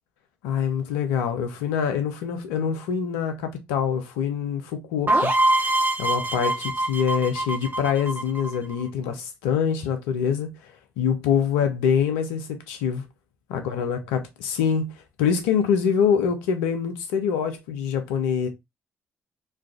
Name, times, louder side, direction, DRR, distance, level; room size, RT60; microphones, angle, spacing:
voice 1, 0.4-5.3 6.0-10.5 11.0-13.0 13.5-14.9 15.2-18.5, left 7 dB, 85° left, 0.5 m, -25 dB
sound 1, 5.1-8.8, right 1 dB, 30° right, 1.0 m, -24 dB
3.2 x 2.3 x 2.4 m
hypercardioid pair, 40°, 7 cm